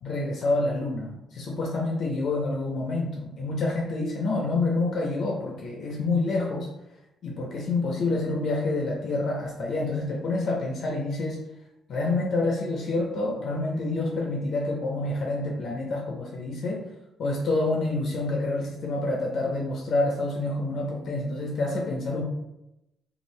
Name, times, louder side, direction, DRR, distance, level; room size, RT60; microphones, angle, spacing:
voice 1, 0.0-6.7 7.2-11.4 11.9-16.9 17.2-22.2, left 2 dB, 65° left, -1 dB, 0.6 m, -27 dB
2.7 x 2.5 x 3.1 m, 0.89 s
cardioid pair, 90°, 0 cm